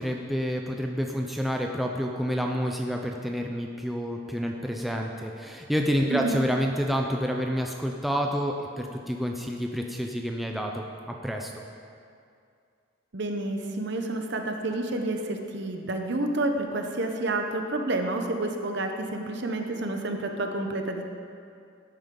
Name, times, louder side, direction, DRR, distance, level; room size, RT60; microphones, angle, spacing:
voice 1, 0.0-11.5, equal, ahead, 1 dB, 0.5 m, -29 dB
voice 2, 13.1-21.0, right 2 dB, 60° right, 4 dB, 0.9 m, -29 dB
12.5 x 9.0 x 3.8 m, 2.4 s
head